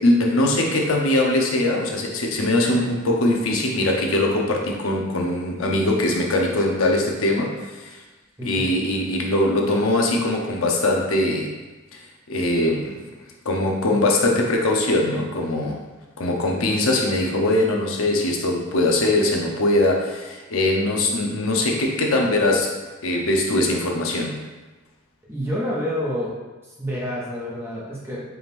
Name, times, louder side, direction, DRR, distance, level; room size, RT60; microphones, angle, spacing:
voice 1, 0.0-7.9 8.4-11.5 11.9-12.0 12.3-13.0 13.4-15.8 16.2-22.7 23.0-24.4, left 1 dB, 80° left, 0 dB, 0.7 m, -21 dB
voice 2, 8.4-8.7 13.9-14.0 25.3-26.3 26.8-28.2, equal, 10° right, -6 dB, 1.0 m, -28 dB
4.6 x 2.5 x 3.5 m, 1.2 s
head